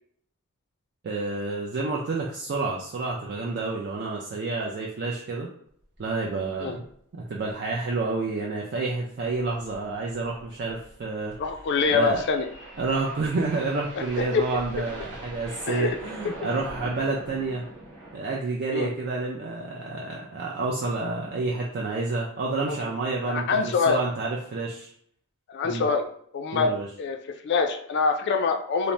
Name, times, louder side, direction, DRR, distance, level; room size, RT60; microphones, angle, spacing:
voice 1, 1.0-5.5 6.0-6.9 7.1-11.3 11.9-12.2 12.8-17.7 18.1-24.9 25.6-25.8 26.5-26.9, right 3 dB, 50° right, -2 dB, 0.4 m, -29 dB
sound 1, 6.0-6.1 6.4-6.5 6.8-6.9 7.4-7.7 9.0-18.4, right 1 dB, 25° right, 0.9 m, -43 dB
voice 2, 11.4-12.5 13.9-14.0 14.3-14.4 15.7-15.9 18.7-18.9 22.7-22.8 23.3-24.0 25.5-26.0 26.3-26.7 27.0-27.2 27.4-28.9, left 5 dB, 50° left, 6 dB, 0.3 m, -24 dB
2.6 x 2.0 x 3.1 m, 0.65 s
head